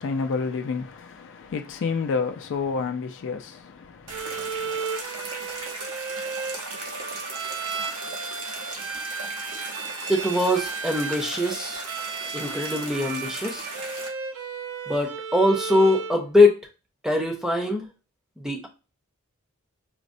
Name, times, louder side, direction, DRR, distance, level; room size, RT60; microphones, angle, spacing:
voice 1, 0.0-4.8, left 5 dB, 55° left, 0.4 m, -30 dB
Bowed string instrument, 4.1-16.2, right 5 dB, 65° right, 0.5 m, -34 dB
sound 1, 4.1-14.1, right 2 dB, 85° right, 0.9 m, -37 dB
voice 2, 10.1-11.9 12.3-13.7 14.9-16.6 17.0-17.9 18.4-18.7, left 2 dB, 5° right, 0.5 m, -22 dB
5.0 x 2.1 x 2.5 m
head